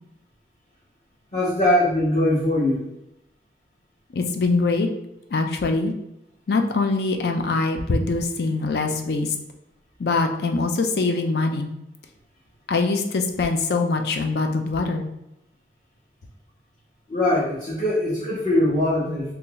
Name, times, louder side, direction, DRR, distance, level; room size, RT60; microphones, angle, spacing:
voice 1, 1.3-2.8 17.1-19.3, left 1 dB, 40° left, -10 dB, 1.0 m, -21 dB
voice 2, 4.1-4.9 5.3-5.9 6.5-9.3 10.0-11.7 12.7-15.1 19.1-19.2, left 3 dB, 65° left, 5 dB, 0.4 m, -23 dB
2.8 x 2.6 x 3.8 m, 0.87 s
head